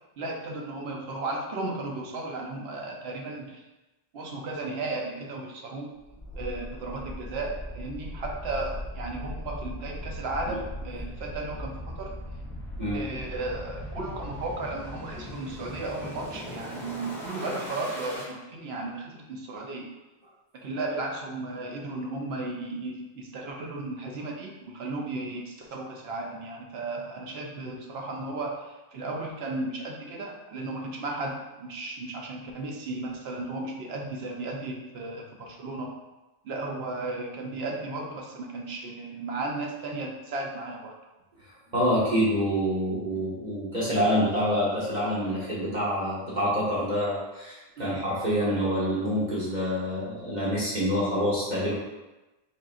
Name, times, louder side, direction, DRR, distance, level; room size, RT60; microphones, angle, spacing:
voice 1, 0.2-3.6 4.1-5.9 6.4-12.1 12.9-19.9 20.5-35.9 36.4-40.9 47.8-48.0, right 2 dB, 80° right, 0 dB, 0.9 m, -35 dB
sound 1, 6.1-18.3, equal, 5° left, 0.7 m, -39 dB
voice 2, 41.7-51.7, equal, 45° right, -9 dB, 1.1 m, -27 dB
4.2 x 3.7 x 2.4 m, 1.1 s
omnidirectional pair, 1.0 m